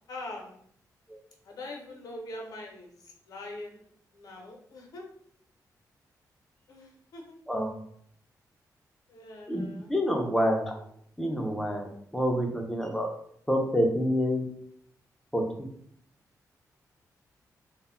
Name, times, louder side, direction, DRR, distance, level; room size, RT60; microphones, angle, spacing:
voice 1, 0.1-0.6 1.4-3.8 4.1-5.1 6.7-7.4 9.1-9.9, left 2 dB, 70° left, 1 dB, 0.6 m, -43 dB
voice 2, 9.9-10.7 11.2-13.1 13.5-14.4 15.3-15.4, equal, 5° left, 1 dB, 0.4 m, -27 dB
2.1 x 2.0 x 3.5 m, 0.67 s
wide cardioid pair, 145°, 7 cm